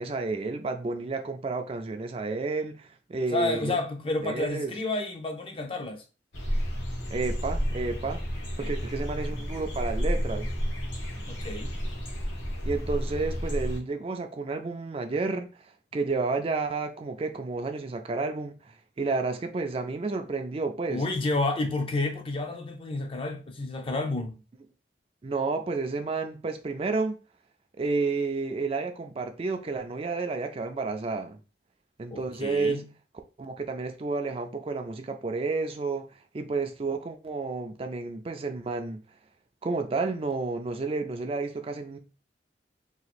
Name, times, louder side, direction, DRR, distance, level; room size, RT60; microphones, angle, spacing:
voice 1, 0.0-3.8 4.2-4.7 7.1-8.2 8.6-10.5 12.6-21.0 25.2-27.2 27.8-31.4 32.0-32.8 33.4-36.1 36.3-39.0 39.6-42.0, right 3 dB, 30° right, 0.3 m, -31 dB
voice 2, 3.3-6.0 8.6-8.7 11.3-11.7 20.9-24.4 32.1-32.9, left 2 dB, 30° left, 0.5 m, -30 dB
sound 1, 6.3-13.8, equal, 85° left, 1.1 m, -31 dB
2.9 x 2.4 x 4.1 m
head